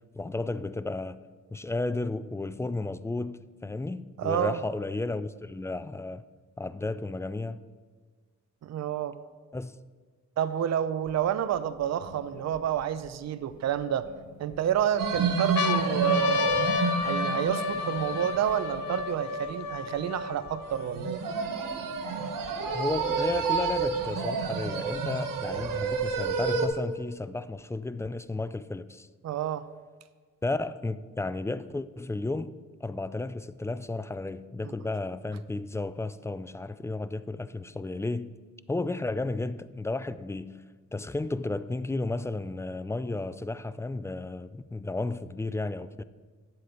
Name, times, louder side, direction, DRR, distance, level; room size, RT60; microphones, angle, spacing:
voice 1, 0.1-1.2 1.5-6.2 6.6-7.6 9.5-9.7 22.7-29.1 30.4-32.5 32.8-38.3 38.7-40.5 40.9-46.0, left 2 dB, 10° left, 0.3 m, -33 dB
voice 2, 4.2-4.6 8.6-9.2 10.4-14.1 14.4-16.7 17.0-21.2 29.2-29.6 34.6-34.7, right 10 dB, 55° right, 0.5 m, -29 dB
sound 1, 11.1-11.2 11.8-13.1 13.8-14.6 15.0-15.1 15.4-21.0 21.7-21.8 22.0-23.0 23.9-25.0, left 5 dB, 65° left, 0.9 m, -32 dB
sound 2, 15.0-19.3 20.7-26.7, right 5 dB, 85° right, 1.1 m, -30 dB
9.7 x 7.7 x 4.4 m
cardioid pair, 80°, 32 cm